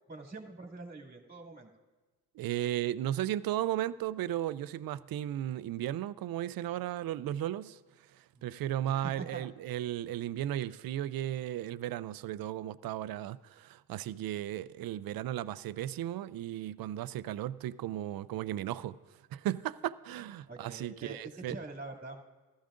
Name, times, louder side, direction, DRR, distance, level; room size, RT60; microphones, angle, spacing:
voice 1, 0.1-1.7 8.3-8.4 8.9-9.4 20.5-22.2, right 2 dB, 25° right, 2.4 m, -44 dB
voice 2, 2.3-21.6, right 12 dB, 65° right, 0.5 m, -35 dB
15.0 x 13.0 x 2.5 m
cardioid pair, 60°, 38 cm